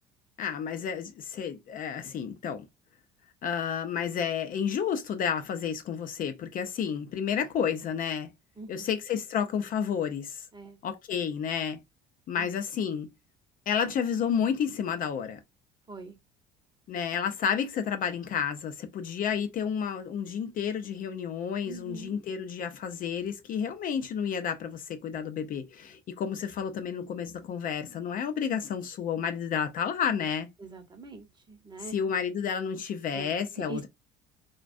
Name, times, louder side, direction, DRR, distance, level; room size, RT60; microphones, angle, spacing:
voice 1, 0.4-2.6 3.4-8.3 8.7-10.4 10.8-11.8 12.3-13.1 13.7-15.4 16.9-30.5 31.9-33.9, left 7 dB, 50° left, 0.5 m, -31 dB
voice 2, 8.6-8.9 10.5-10.8 12.4-12.5 15.9-16.2 21.6-22.2 30.6-31.9 33.1-33.9, right 3 dB, 25° right, 0.8 m, -43 dB
2.3 x 2.2 x 2.5 m
supercardioid pair, 85°, 18 cm